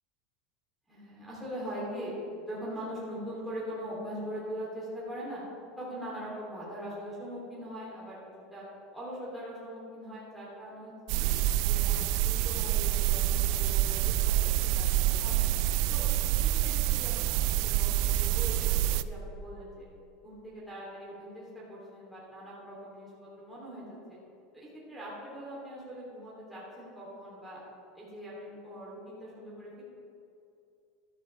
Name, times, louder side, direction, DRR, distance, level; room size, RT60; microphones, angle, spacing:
voice 1, 0.9-2.1 2.4-5.4 5.8-8.2 8.5-8.6 8.9-11.3 11.6-15.5 15.9-16.0 16.4-19.9 20.2-24.2 24.5-27.6 27.9-29.8, equal, ahead, -7 dB, 2.9 m, -42 dB
sound 1, 11.1-19.0, right 13 dB, 55° right, 0.4 m, -27 dB
13.0 x 12.5 x 3.3 m, 2.6 s
supercardioid pair, 150°, 0 cm